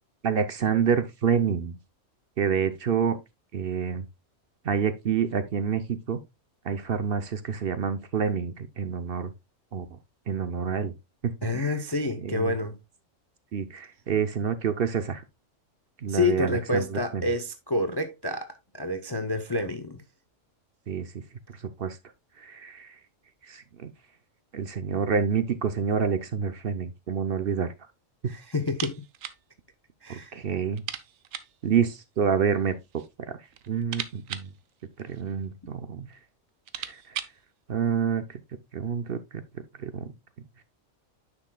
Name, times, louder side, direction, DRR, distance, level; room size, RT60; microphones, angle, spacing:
voice 1, 0.2-1.7 2.4-3.2 3.5-4.0 4.6-6.2 6.7-9.3 9.7-9.9 10.3-10.9 11.2-11.7 12.2-12.5 13.5-15.2 16.0-17.2 20.9-21.1 21.8-22.0 22.4-22.9 23.5-23.9 24.5-27.7 30.3-30.8 31.6-32.7 33.3-33.4 33.7-34.5 35.0-36.1 36.8-37.0 37.7-38.4 38.7-39.4 39.8-40.0, right 7 dB, 55° right, 0.7 m, -27 dB
voice 2, 11.4-12.8 16.1-20.0 28.3-29.0 30.0-30.4, left 2 dB, 30° left, 0.4 m, -28 dB
sound 1, 28.7-29.4 29.7-29.8 30.1-30.2 30.7-31.6 32.5-33.1 33.5-35.4 36.1-36.2 36.5-37.4, right 10 dB, 85° right, 1.1 m, -39 dB
9.7 x 6.2 x 2.2 m
omnidirectional pair, 1.3 m